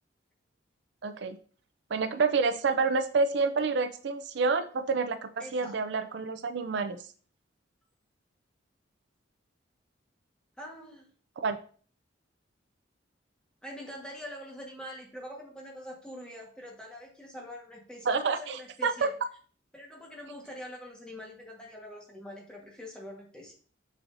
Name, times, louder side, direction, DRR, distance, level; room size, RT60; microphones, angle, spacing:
voice 1, 1.0-1.4 1.9-7.0 11.4-11.6 18.1-19.1, right 4 dB, 60° right, 9 dB, 0.4 m, -28 dB
voice 2, 5.4-5.7 10.6-11.1 13.6-19.1 19.7-23.5, equal, 5° left, -2 dB, 1.3 m, -44 dB
6.4 x 6.1 x 2.6 m, 0.42 s
head